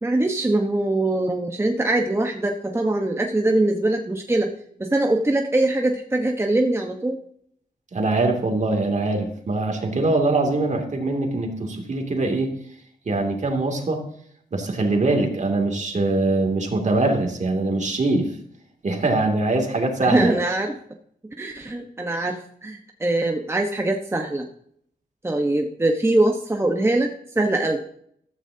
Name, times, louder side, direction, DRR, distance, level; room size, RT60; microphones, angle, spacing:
voice 1, 0.0-4.5 4.8-7.2 20.0-20.7 21.4-24.5 25.2-27.1 27.3-27.8, right 2 dB, 15° right, 2 dB, 1.1 m, -22 dB
voice 2, 7.9-12.5 13.1-14.0 14.5-18.3 18.8-20.3, right 2 dB, 45° right, 3 dB, 2.6 m, -22 dB
14.5 x 13.0 x 2.8 m, 0.66 s
wide cardioid pair, 110°, 16 cm